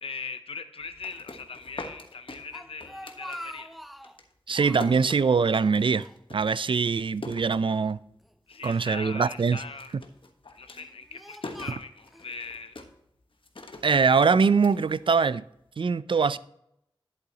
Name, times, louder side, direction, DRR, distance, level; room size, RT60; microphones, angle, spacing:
voice 1, 0.0-3.7 8.5-9.9 10.5-12.7, left 4 dB, 90° left, 0.6 m, -40 dB
sound 1, 0.8-3.8 4.0-8.2 8.5-9.1 9.4-15.6, left 2 dB, 70° left, 1.2 m, -44 dB
Speech, 2.5-4.2 4.5-5.1 5.5-6.6 6.9-7.0 7.8-8.8 9.5-10.0 10.6-12.3, equal, ahead, 0.4 m, -45 dB
voice 2, 4.5-6.1 6.3-8.0 8.6-9.6 13.8-15.4 15.8-16.4, right 5 dB, 65° right, 0.4 m, -23 dB
11.0 x 7.7 x 2.9 m
wide cardioid pair, 60°, 9 cm